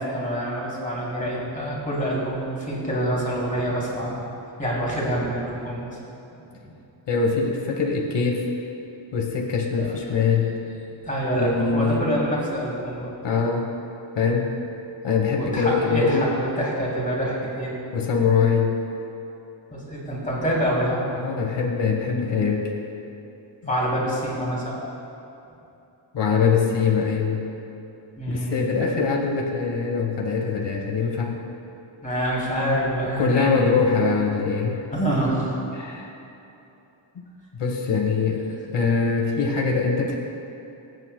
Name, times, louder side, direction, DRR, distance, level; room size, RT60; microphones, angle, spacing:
voice 1, 0.1-4.2 4.6-5.9 9.8-9.9 11.1-13.1 15.4-17.8 19.7-21.1 23.7-24.7 28.2-28.9 32.0-33.7 34.9-35.6, equal, 15° left, -5 dB, 2.8 m, -26 dB
voice 2, 7.1-8.5 9.1-10.5 11.3-12.1 13.2-13.7 14.1-14.5 15.0-16.3 17.9-18.7 21.2-22.7 26.1-27.4 28.3-31.4 33.2-34.8 35.7-36.1 37.6-38.4 38.7-40.2, left 5 dB, 60° left, 1 dB, 1.3 m, -23 dB
23.0 x 8.9 x 2.2 m, 2.9 s
wide cardioid pair, 180°, 47 cm